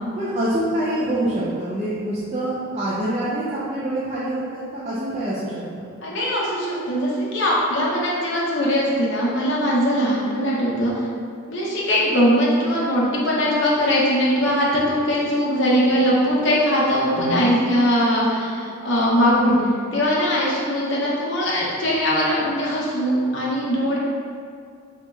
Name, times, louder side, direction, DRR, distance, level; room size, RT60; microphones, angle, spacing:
voice 1, 0.2-5.9 17.2-17.9, right 1 dB, 30° right, -9 dB, 0.4 m, -26 dB
voice 2, 6.0-11.1 11.5-19.6 19.9-24.0, equal, 60° left, -5 dB, 0.7 m, -21 dB
3.0 x 2.7 x 3.4 m, 2.2 s
head